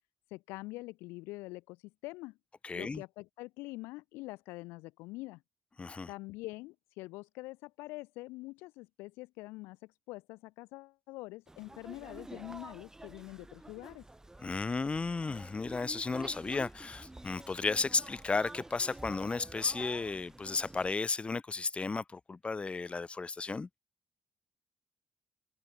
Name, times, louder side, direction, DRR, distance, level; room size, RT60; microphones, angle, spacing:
voice 1, 0.3-2.4 2.7-5.4 6.1-14.0, left 22 dB, 85° left, 0.4 m, -45 dB
voice 2, 2.6-3.0 5.8-6.1 14.4-23.7, left 4 dB, 30° left, 0.6 m, -34 dB
sound 1, 11.5-20.9, right 2 dB, 15° right, 1.1 m, -49 dB
supercardioid pair, 55°, 4 cm